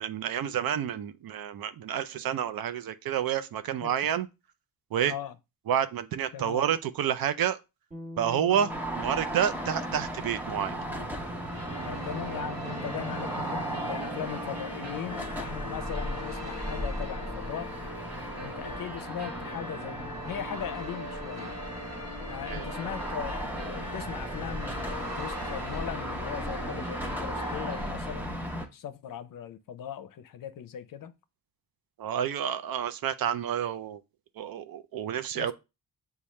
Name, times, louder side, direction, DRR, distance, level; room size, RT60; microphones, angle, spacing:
voice 1, 0.0-4.3 4.9-5.1 5.7-7.6 8.2-10.8 22.5-22.6 32.0-34.0 34.4-35.5, right 9 dB, 75° right, 0.6 m, -29 dB
voice 2, 6.3-6.7 8.5-8.7 11.8-17.7 18.4-21.5 22.3-31.1 35.4-35.5, left 9 dB, 65° left, 0.6 m, -39 dB
sound 1, 7.9-17.7, left 1 dB, 20° right, 1.2 m, -48 dB
sound 2, 8.7-28.7, right 1 dB, 5° right, 0.8 m, -36 dB
sound 3, 10.5-27.9, left 1 dB, 45° right, 1.1 m, -41 dB
7.0 x 2.4 x 3.1 m
cardioid pair, 110°, 36 cm